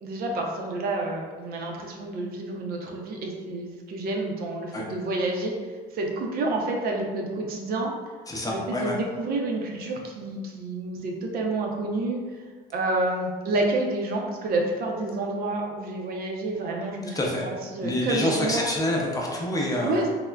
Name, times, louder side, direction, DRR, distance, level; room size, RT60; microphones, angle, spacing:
voice 1, 0.0-5.5 5.9-7.9 8.5-12.2 12.7-18.6 19.8-20.1, right 2 dB, 65° right, 0 dB, 0.5 m, -29 dB
voice 2, 8.3-9.0 17.1-17.5 17.8-20.1, left 1 dB, 20° left, -2 dB, 0.5 m, -27 dB
3.4 x 2.1 x 2.2 m, 1.5 s
cardioid pair, 110°, 17 cm